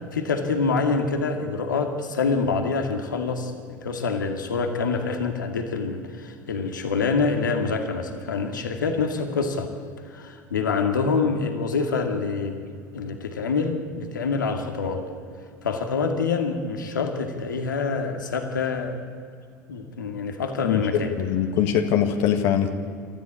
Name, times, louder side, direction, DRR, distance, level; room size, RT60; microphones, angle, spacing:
voice 1, 0.0-9.7 10.1-12.6 12.9-15.0 15.6-19.0 19.7-21.1, left 4 dB, 80° left, 4 dB, 2.1 m, -26 dB
voice 2, 20.6-22.7, left 9 dB, 60° left, 4 dB, 1.6 m, -22 dB
28.5 x 14.0 x 8.4 m, 2.2 s
hypercardioid pair, 75°, 10 cm